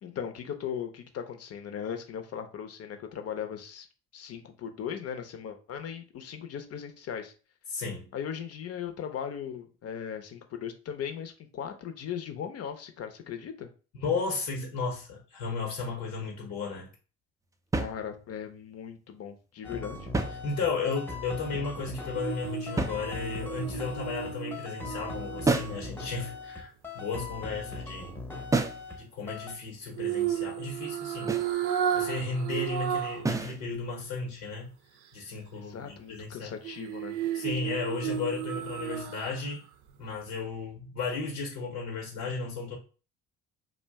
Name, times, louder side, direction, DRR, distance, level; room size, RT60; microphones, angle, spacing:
voice 1, 0.0-3.9 4.1-7.3 8.1-13.7 17.8-20.1 35.5-37.1, left 8 dB, 50° left, 6 dB, 0.7 m, -38 dB
voice 2, 7.7-8.1 14.0-16.9 20.4-28.2 29.0-31.4 31.9-34.7 35.1-36.5 37.3-39.6 40.0-42.8, left 4 dB, 80° left, 0 dB, 0.9 m, -34 dB
sound 1, 17.7-18.5 19.9-21.0 22.8-23.5 25.4-25.9 28.5-28.9 31.3-31.6 33.2-33.6, right 3 dB, 10° right, 0.3 m, -30 dB
sound 2, 19.6-29.0 29.3-29.5, left 3 dB, 5° left, 0.8 m, -40 dB
sound 3, 22.1-26.4 30.0-33.3 33.7-33.8 36.6-39.5 39.9-40.0, right 9 dB, 75° right, 0.5 m, -33 dB
2.4 x 2.1 x 3.5 m, 0.36 s
supercardioid pair, 65°, 32 cm